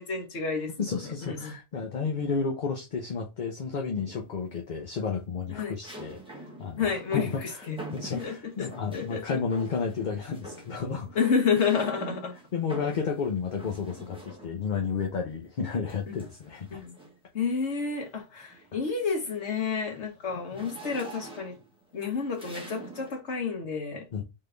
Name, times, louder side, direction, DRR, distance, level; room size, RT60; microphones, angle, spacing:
voice 1, 0.0-1.0 1.3-1.6 5.5-5.7 6.8-7.8 8.1-9.4 11.1-12.3 16.7-16.9 17.3-21.6 21.9-24.0, left 5 dB, 65° left, 1.6 m, -30 dB
voice 2, 0.8-7.6 7.9-11.2 12.5-16.8 20.5-20.6 24.1-24.2, left 5 dB, 45° left, 0.7 m, -32 dB
sound 1, 4.0-4.5 5.8-9.2 9.5-10.1 10.3-14.8 15.9-17.3 17.8-18.1 18.4-23.2, right 1 dB, 5° right, 1.0 m, -45 dB
3.8 x 3.4 x 3.8 m
omnidirectional pair, 1.2 m